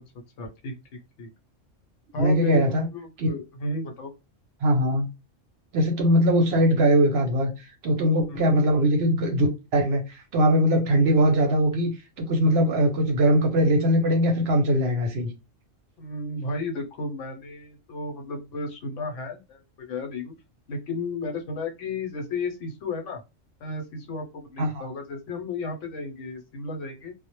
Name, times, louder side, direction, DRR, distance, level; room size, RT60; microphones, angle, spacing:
voice 1, 0.4-0.7 1.2-1.3 2.1-4.1 8.3-8.5 16.0-20.3 20.7-23.2 23.6-27.1, left 3 dB, 75° left, 0.9 m, -33 dB
voice 2, 2.2-2.9 3.2-3.3 4.6-5.1 5.7-7.5 7.8-9.5 9.7-11.9 12.2-15.3 24.6-24.8, equal, 65° right, 0.8 m, -21 dB
2.1 x 2.0 x 2.9 m
omnidirectional pair, 1.3 m